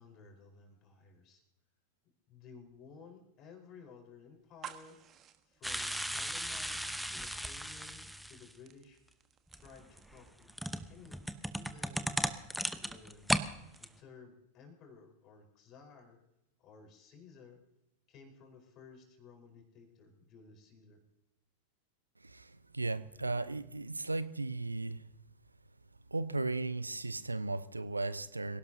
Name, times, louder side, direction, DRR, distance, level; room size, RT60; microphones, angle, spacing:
voice 1, 0.0-1.4 2.3-5.0 5.4-9.0 9.5-10.5 10.8-12.3 12.7-13.4 13.7-16.2 16.6-17.6 18.1-21.0, left 5 dB, 35° left, 4.5 m, -56 dB
sound 1, 4.4-14.1, right 9 dB, 30° right, 1.4 m, -57 dB
Alcohol FX, 5.6-8.5 9.5-13.5 13.8-13.9, equal, ahead, 1.0 m, -36 dB
voice 2, 22.2-25.0 26.1-28.6, right 3 dB, 80° right, 0.7 m, -36 dB
25.5 x 17.5 x 2.8 m
figure-of-eight pair, 90°, 0 cm